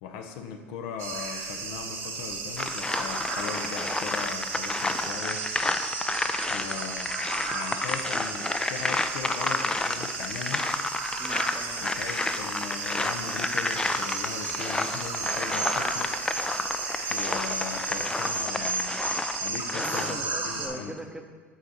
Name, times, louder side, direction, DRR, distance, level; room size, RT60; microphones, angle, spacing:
voice 1, 0.0-5.5 5.8-6.0 6.5-7.1 7.5-10.7 11.8-16.1 17.1-19.0 19.4-20.9, left 6 dB, 65° left, 5 dB, 0.6 m, -38 dB
sound 1, 1.0-20.7, right 4 dB, 65° right, 1.1 m, -34 dB
sound 2, 2.6-20.1, left 2 dB, 10° left, 0.3 m, -31 dB
voice 2, 11.2-11.8 19.7-21.2, right 1 dB, 10° right, 5 dB, 0.7 m, -40 dB
6.1 x 4.7 x 4.0 m, 1.5 s
hypercardioid pair, 70°, 6 cm